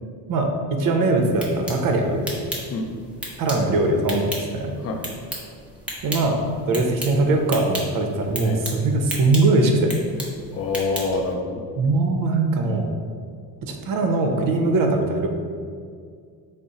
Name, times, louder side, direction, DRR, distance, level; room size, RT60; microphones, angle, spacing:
voice 1, 0.3-2.3 3.4-4.8 6.0-6.4 6.7-9.9 11.8-12.9 13.6-15.3, right 2 dB, 50° right, 3 dB, 0.6 m, -21 dB
sound 1, 1.2-11.3, right 1 dB, 5° right, 0.7 m, -36 dB
voice 2, 10.5-11.6, left 3 dB, 35° left, 3 dB, 0.4 m, -26 dB
3.6 x 2.0 x 3.9 m, 2.2 s
supercardioid pair, 95°, 42 cm